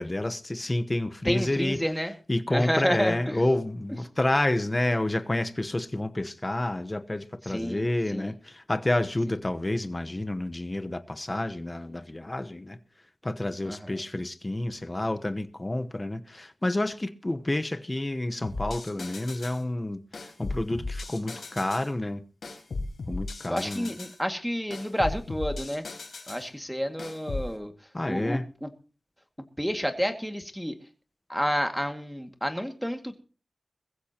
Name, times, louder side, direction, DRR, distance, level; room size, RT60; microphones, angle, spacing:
voice 1, 0.0-1.8 2.3-12.8 13.2-20.0 20.4-22.2 23.1-23.9 27.9-28.5, left 1 dB, 25° left, 1.0 m, -29 dB
voice 2, 1.3-2.1 2.5-3.4 7.5-7.8 8.1-8.3 13.6-14.0 23.5-25.9 26.3-27.7 28.1-28.7 29.6-30.8 31.3-33.2, equal, ahead, 2.1 m, -30 dB
sound 1, 18.4-19.6 20.1-21.9 22.4-24.2 24.7-26.5 27.0-27.5, left 3 dB, 85° left, 4.3 m, -36 dB
21.0 x 15.5 x 3.0 m
wide cardioid pair, 75°, 0 cm